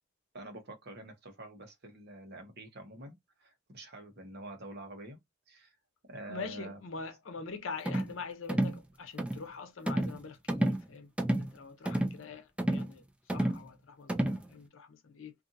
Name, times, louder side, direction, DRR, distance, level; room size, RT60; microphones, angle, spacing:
voice 1, 0.3-5.2 5.5-5.7 6.1-6.8 11.8-11.9, right 2 dB, 55° right, 1.0 m, -47 dB
voice 2, 6.3-11.1 11.4-13.0 13.3-15.3, left 4 dB, 85° left, 0.7 m, -44 dB
sound 1, 7.8-8.1 8.5-8.8 9.2-9.4 9.9-10.2 10.5-10.8 11.2-11.5 11.8-12.2 12.6-12.9 13.3-13.6 14.1-14.4, right 1 dB, 5° right, 0.3 m, -30 dB
2.6 x 2.5 x 2.6 m
head